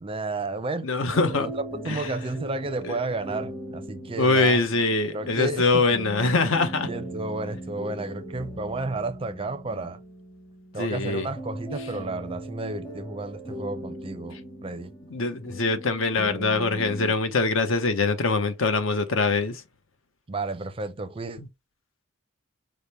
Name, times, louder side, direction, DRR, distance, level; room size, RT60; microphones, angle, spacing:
voice 1, 0.0-0.9 1.3-4.6 5.1-5.9 6.9-10.0 10.7-14.9 20.3-21.4, right 2 dB, 25° right, 0.5 m, -32 dB
voice 2, 0.8-1.5 1.9-2.1 2.8-2.9 4.2-6.9 10.8-11.3 15.1-19.6 21.4-21.5, left 3 dB, 65° left, 0.8 m, -23 dB
sound 1, 1.1-17.1, right 1 dB, 20° left, 1.0 m, -39 dB
5.0 x 2.1 x 4.1 m
head